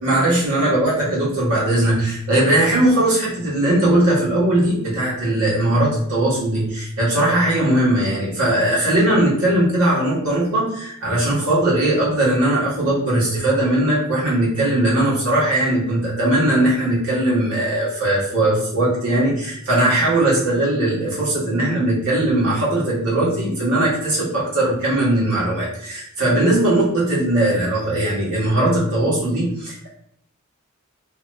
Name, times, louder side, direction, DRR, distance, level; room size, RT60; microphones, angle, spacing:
voice 1, 0.0-29.9, right 1 dB, 85° right, -6 dB, 1.4 m, -19 dB
2.9 x 2.5 x 3.1 m, 0.72 s
head